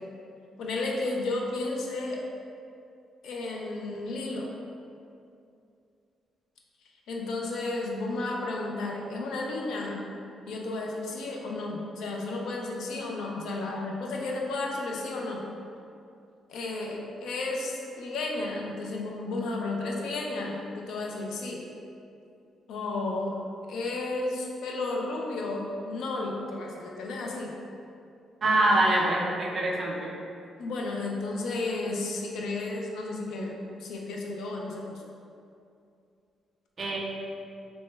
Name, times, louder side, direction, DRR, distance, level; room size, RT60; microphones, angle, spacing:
voice 1, 0.6-2.2 3.2-4.5 7.1-10.0 10.5-15.4 16.5-21.6 22.7-23.4 23.7-27.5 30.6-34.9, left 2 dB, 75° left, -1 dB, 0.4 m, -33 dB
voice 2, 28.4-30.1 36.8-37.2, right 1 dB, 35° right, -2 dB, 0.4 m, -25 dB
3.0 x 2.2 x 3.1 m, 2.5 s
cardioid pair, 165°, 0 cm